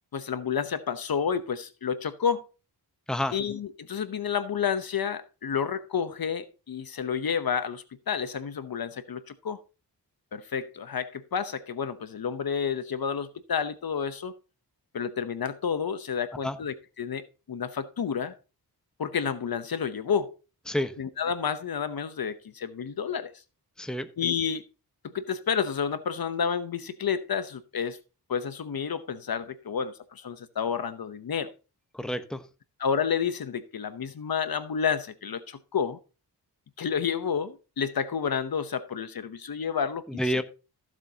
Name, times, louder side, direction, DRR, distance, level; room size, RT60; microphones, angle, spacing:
voice 1, 0.1-2.4 3.3-9.6 10.3-14.3 14.9-18.3 19.0-20.3 21.0-23.3 24.2-24.6 25.0-28.0 28.3-31.5 32.8-36.0 36.8-40.3, left 7 dB, 60° left, 0.9 m, -30 dB
voice 2, 23.8-24.1 31.9-32.4 40.1-40.4, equal, ahead, 1.0 m, -29 dB
14.5 x 7.4 x 2.8 m
wide cardioid pair, 80°, 40 cm